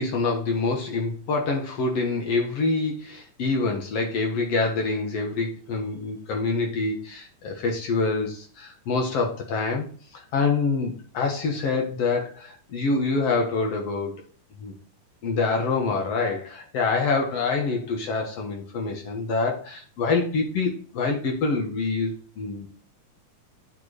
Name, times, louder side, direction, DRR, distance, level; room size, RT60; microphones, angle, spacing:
voice 1, 0.0-9.9 10.1-14.1 14.6-14.7 15.2-22.8, left 4 dB, 60° left, 2 dB, 2.0 m, -26 dB
8.9 x 4.6 x 4.9 m, 0.42 s
omnidirectional pair, 3.7 m